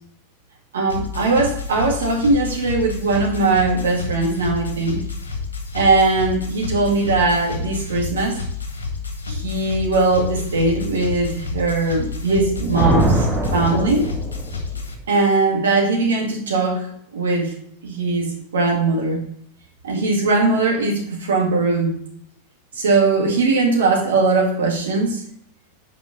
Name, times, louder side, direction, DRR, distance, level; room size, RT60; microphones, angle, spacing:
voice 1, 0.7-5.0 5.7-8.4 9.3-13.2 13.5-14.1 15.1-16.8 17.1-17.5 17.8-18.3 18.5-19.2 19.8-21.9 22.7-25.2, right 3 dB, 65° right, -1 dB, 1.9 m, -20 dB
sound 1, 0.9-14.9, left 4 dB, 70° left, 1.1 m, -30 dB
Thunder, 12.5-14.7, right 2 dB, 5° right, 1.6 m, -22 dB
6.0 x 4.9 x 5.1 m, 0.67 s
figure-of-eight pair, 90°, 0 cm